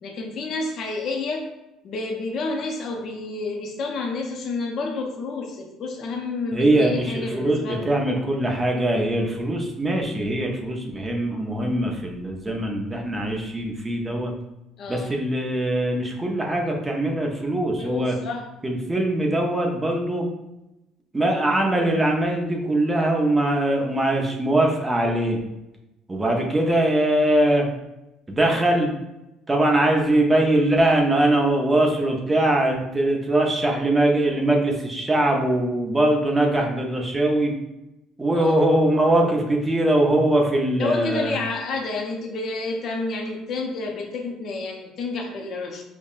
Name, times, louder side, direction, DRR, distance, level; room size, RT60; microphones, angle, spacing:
voice 1, 0.0-1.4 1.8-7.9 14.8-15.2 17.8-18.4 28.4-28.7 38.3-38.6 40.8-45.8, left 3 dB, 45° left, 1 dB, 0.6 m, -30 dB
voice 2, 6.5-14.3 14.9-18.1 18.6-20.3 21.1-25.4 26.1-27.7 28.3-28.9 29.5-37.5 38.2-41.3, right 1 dB, 15° right, 0 dB, 0.5 m, -22 dB
5.3 x 2.1 x 2.4 m, 0.93 s
cardioid pair, 145°, 0 cm